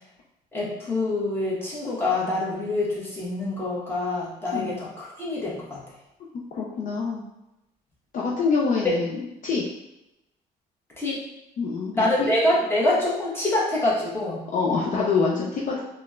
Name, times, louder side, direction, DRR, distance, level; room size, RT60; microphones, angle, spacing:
voice 1, 0.5-5.8 8.8-8.9 11.0-11.2 11.9-14.4, left 2 dB, 15° left, -6 dB, 1.1 m, -25 dB
voice 2, 6.6-7.2 8.1-9.2 9.4-9.7 11.6-12.3 14.5-15.8, left 4 dB, 50° left, -3 dB, 0.5 m, -25 dB
4.0 x 2.1 x 2.4 m, 0.90 s
cardioid pair, 110°, 17 cm